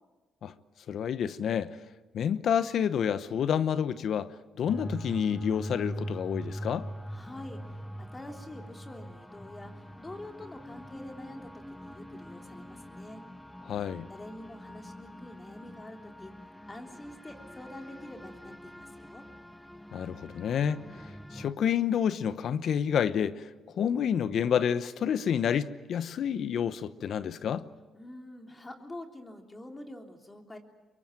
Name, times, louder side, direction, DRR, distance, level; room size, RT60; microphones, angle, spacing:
voice 1, 0.9-1.8 2.1-6.9 13.7-14.1 19.9-23.5 23.8-27.7, left 8 dB, 65° left, 0.9 m, -29 dB
sound 1, 4.7-21.5, equal, 5° left, 1.1 m, -43 dB
voice 2, 7.1-13.2 14.1-19.2 27.9-30.6, left 1 dB, 20° left, 3.4 m, -46 dB
23.5 x 23.0 x 9.1 m
cardioid pair, 90°, 0 cm